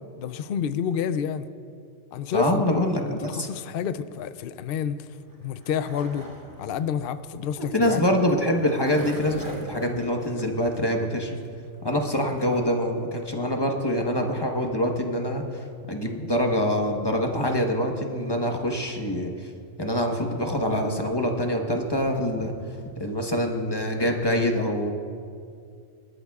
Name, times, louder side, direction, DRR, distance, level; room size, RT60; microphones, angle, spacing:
voice 1, 0.2-1.5 2.1-6.3 6.6-8.4, left 7 dB, 60° left, 12 dB, 0.6 m, -29 dB
voice 2, 2.3-3.5 7.7-11.4 11.8-19.5 19.8-22.5 23.0-24.9, equal, 20° left, 2 dB, 1.1 m, -25 dB
Skateboard, 5.1-12.6, equal, 15° right, 1.7 m, -43 dB
26.0 x 13.0 x 2.4 m, 2.3 s
omnidirectional pair, 1.3 m